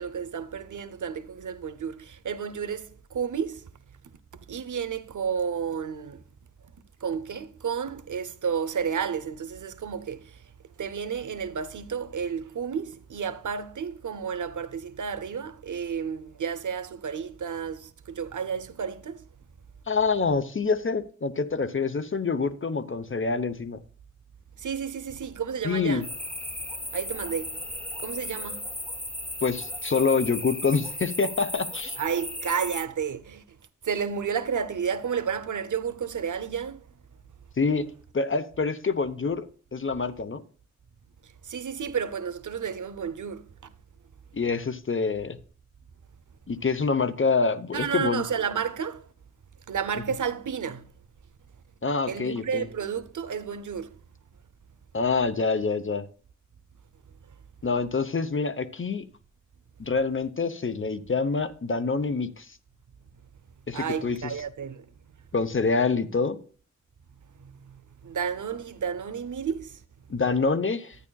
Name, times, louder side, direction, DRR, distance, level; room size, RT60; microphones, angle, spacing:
voice 1, 0.0-3.7 4.5-6.2 7.0-10.4 10.8-19.2 24.6-26.1 26.9-27.6 28.0-28.7 32.0-33.4 33.8-36.8 41.2-43.7 47.7-49.1 49.7-50.9 52.1-54.0 63.7-65.1 67.4-69.8, right 7 dB, 85° right, 0.7 m, -31 dB
voice 2, 19.9-23.8 25.6-26.0 29.4-32.0 37.6-37.9 38.1-39.5 39.7-40.4 44.3-45.4 46.5-48.2 51.8-52.7 54.9-56.1 57.6-59.1 59.8-62.5 63.7-64.3 65.3-66.4 70.1-71.0, left 4 dB, 45° left, 0.8 m, -26 dB
sound 1, 26.0-32.9, left 1 dB, 5° left, 0.4 m, -36 dB
11.0 x 9.6 x 2.3 m
wide cardioid pair, 65°, 30 cm